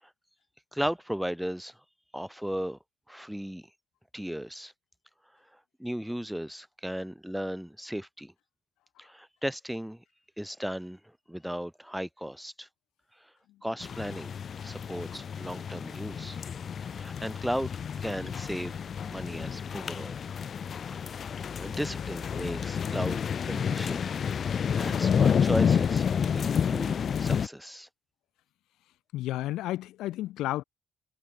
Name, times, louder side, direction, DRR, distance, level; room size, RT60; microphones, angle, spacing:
voice 1, 0.7-1.8 2.1-2.8 3.1-3.7 4.1-4.7 5.8-8.3 9.0-10.0 10.4-11.0 11.3-12.7 13.6-14.3 14.6-16.4 16.9-17.7 18.0-18.8 19.1-20.2 20.9-21.2 21.6-23.2 23.5-24.1 24.5-27.9, equal, ahead, 6.9 m, -36 dB
sound 1, 13.8-27.5, left 7 dB, 45° left, 3.5 m, -30 dB
voice 2, 29.1-30.6, left 15 dB, 90° left, 6.5 m, -32 dB
cardioid pair, 105°, 0 cm